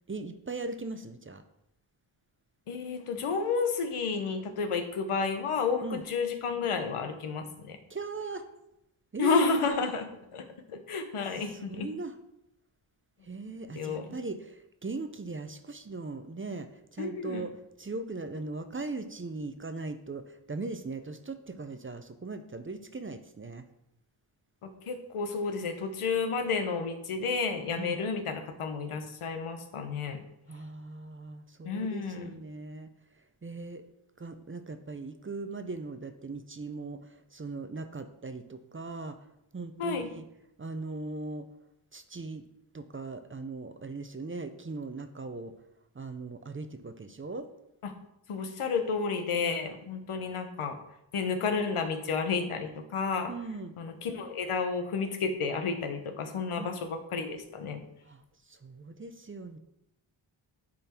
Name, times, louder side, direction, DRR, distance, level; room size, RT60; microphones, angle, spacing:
voice 1, 0.1-1.4 5.8-6.0 7.9-8.5 9.1-9.5 11.3-12.2 13.2-23.6 27.8-28.0 30.5-32.9 33.4-33.8 34.2-39.2 39.5-40.3 40.6-41.5 41.9-42.4 42.7-45.6 45.9-47.5 49.4-49.5 53.3-53.8 56.6-56.7 58.0-59.6, right 3 dB, 25° right, 9 dB, 0.6 m, -39 dB
voice 2, 2.7-7.8 9.2-11.9 13.8-14.2 17.0-17.4 24.6-30.2 31.6-32.4 39.8-40.1 47.8-47.9 48.3-50.8 51.1-53.3 53.8-57.8, left 5 dB, 85° left, 7 dB, 1.1 m, -31 dB
10.0 x 4.0 x 4.4 m, 0.84 s
wide cardioid pair, 85°, 49 cm